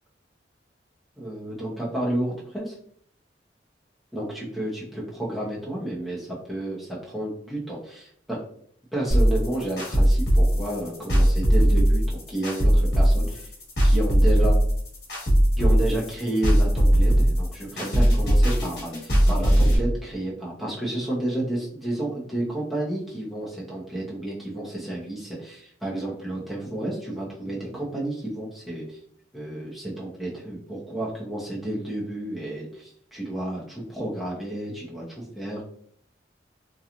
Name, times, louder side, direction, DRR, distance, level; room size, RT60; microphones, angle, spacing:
voice 1, 1.2-2.7 4.1-8.4 8.9-13.5 13.8-14.5 15.6-29.0 29.3-35.6, right 1 dB, ahead, -6 dB, 0.7 m, -31 dB
sound 1, 9.1-19.8, equal, 60° left, 1.2 m, -19 dB
2.9 x 2.3 x 2.5 m, 0.62 s
head